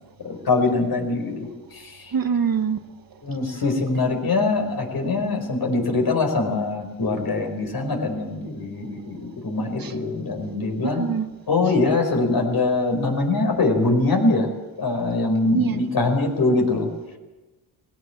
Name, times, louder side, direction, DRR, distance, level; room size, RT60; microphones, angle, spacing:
voice 1, 0.2-1.5 1.8-1.9 3.2-11.0 11.5-14.5 14.8-16.9, left 3 dB, 50° left, 3 dB, 5.0 m, -23 dB
voice 2, 2.1-2.8 9.8-9.9 10.8-11.3 15.4-15.8, right 7 dB, 50° right, 8 dB, 1.3 m, -24 dB
19.0 x 17.5 x 7.9 m, 1.2 s
cardioid pair, 95°, 46 cm